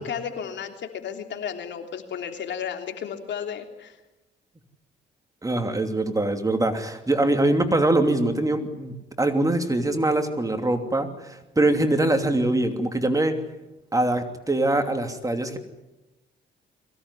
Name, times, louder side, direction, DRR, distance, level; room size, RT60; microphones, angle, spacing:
voice 1, 0.0-4.0, left 7 dB, 65° left, 5 dB, 3.3 m, -33 dB
voice 2, 5.4-13.4 13.9-15.6, right 2 dB, 15° right, 6 dB, 2.8 m, -23 dB
23.0 x 17.0 x 9.9 m, 1.0 s
cardioid pair, 90°, 20 cm